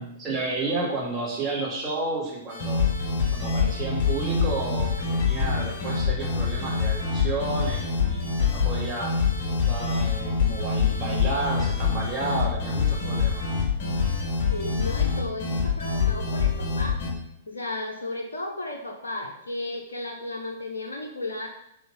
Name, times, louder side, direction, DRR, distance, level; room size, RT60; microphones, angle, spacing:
voice 1, 0.0-2.8 3.3-9.1 9.6-13.4, right 2 dB, 25° right, -4 dB, 3.0 m, -31 dB
sound 1, 2.5-17.1, left 5 dB, 50° left, 1.8 m, -25 dB
voice 2, 14.5-17.0 17.5-21.5, left 2 dB, 75° left, 1 dB, 1.0 m, -34 dB
6.6 x 4.4 x 5.6 m, 0.77 s
figure-of-eight pair, 105°, 0 cm